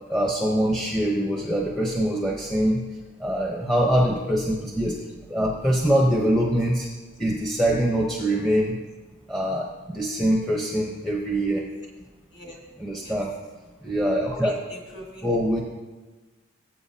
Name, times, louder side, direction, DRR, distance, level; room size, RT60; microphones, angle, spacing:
voice 1, 0.1-2.8 3.2-6.9 7.2-8.8 9.3-11.6 12.8-13.3 13.8-14.5 15.2-15.6, right 1 dB, ahead, -2 dB, 0.9 m, -24 dB
voice 2, 12.0-12.6 13.0-13.2 14.3-15.6, left 1 dB, 20° left, 0 dB, 1.5 m, -39 dB
18.0 x 8.0 x 2.8 m, 1.3 s
head